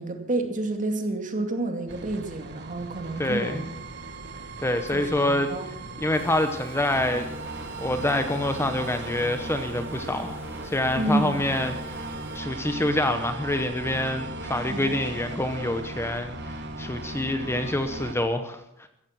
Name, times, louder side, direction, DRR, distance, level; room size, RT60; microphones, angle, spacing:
voice 1, 0.0-3.6 4.9-5.7 11.0-11.6 14.7-14.9, right 2 dB, 40° right, 5 dB, 2.4 m, -29 dB
sound 1, 1.9-18.1, right 2 dB, 55° right, 1.4 m, -37 dB
voice 2, 3.2-3.6 4.6-5.5 6.0-7.3 7.8-10.4 10.6-12.0 12.3-18.9, left 1 dB, 10° left, 8 dB, 1.0 m, -26 dB
sound 2, 6.1-12.4, right 1 dB, 10° right, 2.8 m, -46 dB
15.5 x 15.0 x 6.0 m, 0.76 s
head